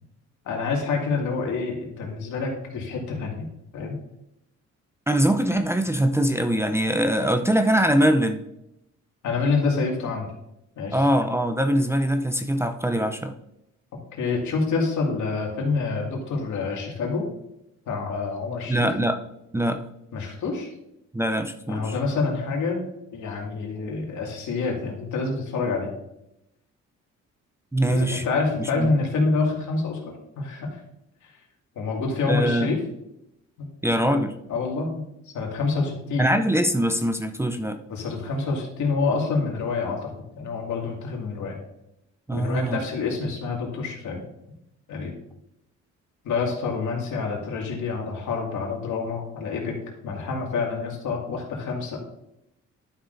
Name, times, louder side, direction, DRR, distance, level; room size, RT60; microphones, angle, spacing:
voice 1, 0.4-3.5 3.7-4.0 9.2-10.3 10.8-11.0 14.1-17.2 17.9-18.9 20.1-20.7 21.7-22.8 23.1-25.9 27.8-30.0 30.4-30.8 31.2-31.3 31.8-32.8 33.6-33.7 34.0-34.2 34.5-36.3 37.9-41.6 42.3-44.2 44.9-45.1 46.2-49.7 50.0-52.0, left 4 dB, 75° left, 0 dB, 2.3 m, -27 dB
voice 2, 5.1-8.4 10.9-13.3 18.7-19.2 19.5-19.8 21.1-21.9 27.7-28.2 28.8-28.9 32.3-32.7 33.8-34.3 36.2-37.8 42.3-42.8, right 1 dB, 10° right, 6 dB, 0.6 m, -22 dB
11.5 x 6.0 x 2.6 m, 0.83 s
cardioid pair, 90°, 30 cm